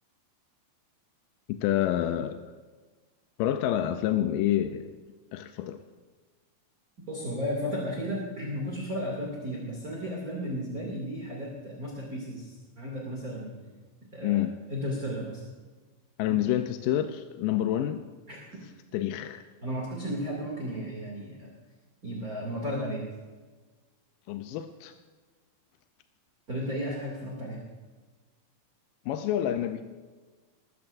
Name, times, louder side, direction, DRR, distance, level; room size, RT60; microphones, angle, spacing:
voice 1, 1.5-2.4 3.4-5.0 5.3-5.8 14.2-14.6 16.2-18.0 18.9-19.4 24.3-24.9 29.1-29.8, left 11 dB, 85° left, 7 dB, 2.3 m, -28 dB
voice 2, 7.1-13.8 14.1-14.4 14.7-15.4 16.3-16.4 18.3-18.6 19.6-21.5 22.0-23.0 26.5-27.6, equal, 25° right, -3 dB, 2.6 m, -34 dB
20.5 x 15.5 x 2.6 m, 1.4 s
omnidirectional pair, 4.0 m